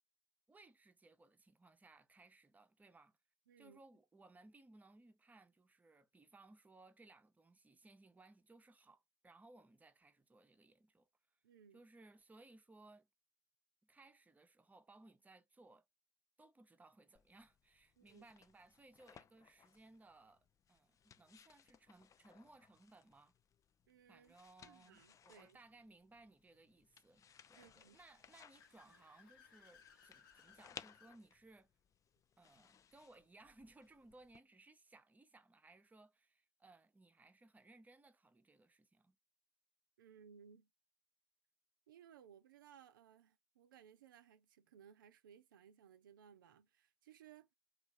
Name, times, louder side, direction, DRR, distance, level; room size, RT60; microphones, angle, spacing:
voice 1, 0.5-3.2 3.6-11.1 11.7-13.1 13.8-15.9 16.4-23.3 24.1-31.7 32.4-39.2, right 2 dB, 15° right, 0.7 m, -63 dB
voice 2, 3.5-3.8 11.4-11.8 18.0-18.3 23.9-24.4 24.6-25.6 27.5-28.0 40.0-40.7 41.9-47.5, right 8 dB, 75° right, 0.5 m, -62 dB
sound 1, 17.1-34.4, left 8 dB, 30° left, 0.4 m, -63 dB
Car / Accelerating revving vroom, 27.9-31.2, left 7 dB, 70° left, 1.1 m, -66 dB
3.3 x 2.4 x 4.0 m
figure-of-eight pair, 65°, 11 cm